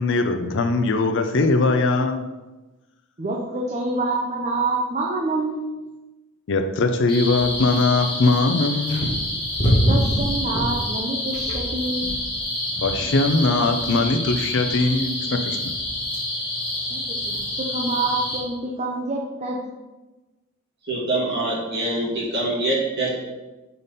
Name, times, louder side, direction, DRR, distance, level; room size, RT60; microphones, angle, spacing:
voice 1, 0.0-2.2 6.5-9.1 12.8-15.6, left 3 dB, 55° left, 7 dB, 0.5 m, -21 dB
voice 2, 3.2-5.8 9.9-12.2 16.7-17.4 17.7-19.6, right 2 dB, 30° right, -1 dB, 0.7 m, -27 dB
sound 1, 7.1-18.4, left 1 dB, 20° left, 1.6 m, -26 dB
voice 3, 20.8-23.2, right 2 dB, 50° right, -6 dB, 2.3 m, -24 dB
5.6 x 5.3 x 4.1 m, 1.1 s
head